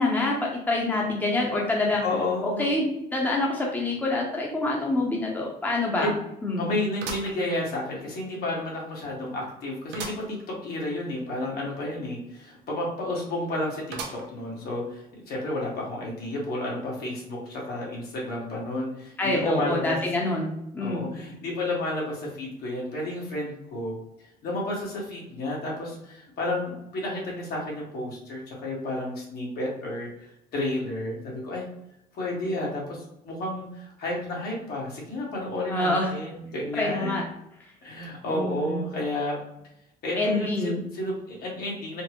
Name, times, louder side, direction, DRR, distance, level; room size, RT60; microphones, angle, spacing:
voice 1, 0.0-2.0 2.4-6.1 6.4-6.6 19.2-20.5 20.7-21.0 35.7-36.1 36.8-37.2 38.3-38.8 40.1-40.8, left 2 dB, 10° left, -2 dB, 0.7 m, -26 dB
voice 2, 1.8-2.7 6.0-6.1 6.6-20.0 20.8-23.9 24.4-30.1 30.5-31.7 32.1-37.3 37.8-39.3 40.0-42.0, left 1 dB, 65° left, -3 dB, 1.5 m, -31 dB
sound 1, 4.8-4.9 5.3-5.4 7.0-8.1 8.6-8.7 9.9-10.3 10.8-10.9 11.0-11.1 13.9-14.5 15.1-15.2 16.2-16.3, right 5 dB, 85° right, 0.7 m, -38 dB
4.2 x 2.0 x 3.0 m, 0.81 s
cardioid pair, 110°, 17 cm